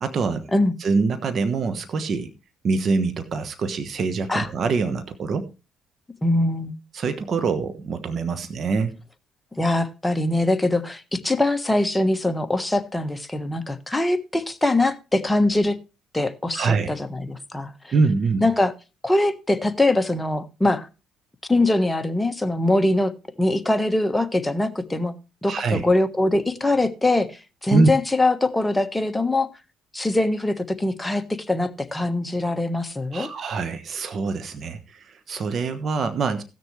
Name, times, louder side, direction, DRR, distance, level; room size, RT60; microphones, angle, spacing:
voice 1, 0.0-0.5 0.8-2.3 2.6-5.5 6.9-9.0 16.5-16.9 17.9-18.4 25.5-25.8 27.7-27.9 33.1-36.4, right 4 dB, 50° right, 1.2 m, -24 dB
voice 2, 6.2-6.7 9.6-15.8 16.1-17.9 18.4-18.7 19.0-20.9 21.5-23.1 23.4-25.1 25.4-29.5 29.9-33.3, left 2 dB, 10° left, 1.3 m, -22 dB
17.0 x 6.6 x 3.2 m
supercardioid pair, 70°, 0 cm